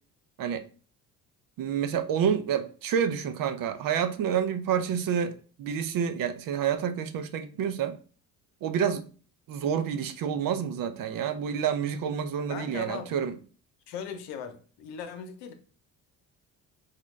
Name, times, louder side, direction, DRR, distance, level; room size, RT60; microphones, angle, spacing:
voice 1, 1.6-8.0 8.6-9.1 9.5-13.3, right 8 dB, 60° right, 0.6 m, -28 dB
voice 2, 12.5-13.1 13.9-15.5, left 7 dB, 90° left, 0.7 m, -39 dB
4.0 x 2.2 x 3.1 m
supercardioid pair, 70°, 38 cm